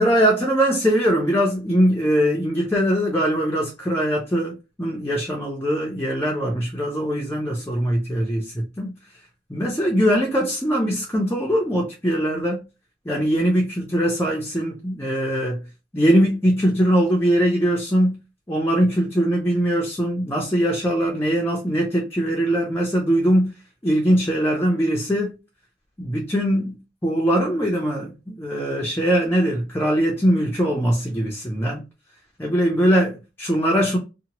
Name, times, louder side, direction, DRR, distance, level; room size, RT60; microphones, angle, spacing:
voice 1, 0.0-8.9 9.5-12.6 13.0-15.6 15.9-18.2 18.5-23.6 23.8-25.3 26.0-26.8 27.0-31.8 32.4-34.0, equal, 15° left, 0.5 m, -21 dB
2.8 x 2.1 x 2.8 m
head